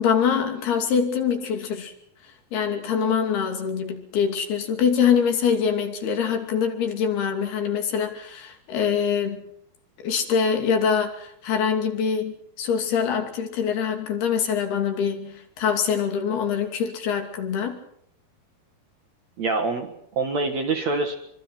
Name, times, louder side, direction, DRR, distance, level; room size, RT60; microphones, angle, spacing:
voice 1, 0.0-1.9 2.5-9.4 10.0-17.8, left 7 dB, 70° left, 5 dB, 4.7 m, -24 dB
voice 2, 19.4-21.2, right 3 dB, 55° right, 6 dB, 2.2 m, -25 dB
25.0 x 25.0 x 6.0 m, 0.70 s
omnidirectional pair, 4.7 m